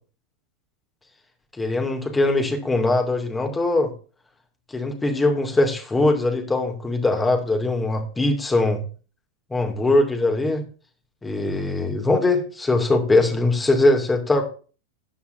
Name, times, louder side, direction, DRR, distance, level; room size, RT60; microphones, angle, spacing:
voice 1, 1.6-3.9 4.7-8.8 9.5-10.6 11.2-14.5, left 2 dB, 10° left, 4 dB, 2.4 m, -21 dB
13.0 x 9.7 x 2.7 m, 0.38 s
figure-of-eight pair, 90°, 0 cm